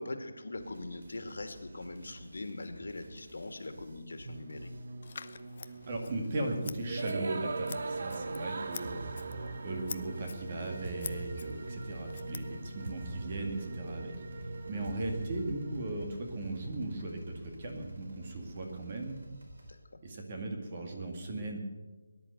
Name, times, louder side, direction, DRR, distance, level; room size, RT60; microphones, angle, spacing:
voice 1, 0.0-4.7 9.3-9.6 19.7-20.0, left 2 dB, 75° left, 7 dB, 2.3 m, -42 dB
sound 1, 0.5-5.0 5.7-7.2 7.7-9.4 9.9-19.8, equal, 60° right, 4.2 m, -53 dB
sound 2, 4.2-19.0, right 3 dB, 45° right, 0.9 m, -41 dB
Scissors, 5.0-13.0, left 5 dB, 40° left, 0.7 m, -48 dB
voice 2, 5.6-9.2 9.6-19.2 20.0-21.6, right 2 dB, 30° right, 3 dB, 2.1 m, -38 dB
19.0 x 11.0 x 6.7 m, 1.3 s
figure-of-eight pair, 175°, 0 cm